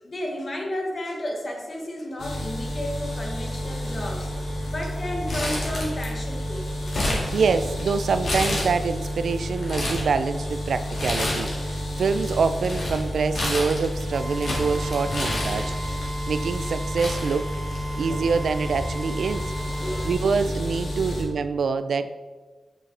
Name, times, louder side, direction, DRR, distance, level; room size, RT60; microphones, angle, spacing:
voice 1, 0.0-4.3 4.7-6.7 19.8-20.1 21.0-21.3, left 1 dB, 35° left, 1 dB, 1.2 m, -32 dB
sound 1, 2.2-21.2, equal, 75° left, 1.8 m, -30 dB
Crumpling crinkling, 5.3-6.3 6.6-7.8 8.2-9.1 9.5-10.1 10.9-11.7 12.0-16.0 16.6-16.7 17.0-18.0 18.3-18.4 19.4-19.6, left 1 dB, 55° left, 1.8 m, -30 dB
voice 2, 7.0-15.7 16.3-17.5 18.0-19.5 20.0-22.1, right 5 dB, 75° right, 10 dB, 0.3 m, -25 dB
Drill, 14.1-20.1, right 1 dB, 30° right, 0.8 m, -38 dB
7.4 x 6.2 x 3.3 m, 1.3 s
wide cardioid pair, 165°, 0 cm